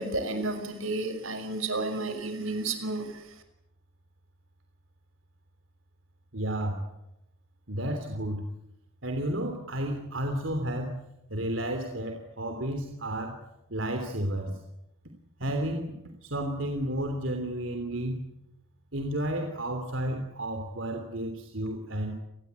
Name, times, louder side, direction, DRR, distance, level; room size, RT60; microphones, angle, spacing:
voice 1, 0.0-3.1, right 2 dB, 85° right, 8 dB, 5.8 m, -31 dB
voice 2, 6.3-6.9 7.7-8.4 9.0-11.0 11.3-13.4 13.7-14.6 15.4-15.9 16.2-18.2 18.9-22.2, right 1 dB, 65° right, 5 dB, 3.3 m, -32 dB
29.5 x 20.5 x 8.3 m, 0.85 s
head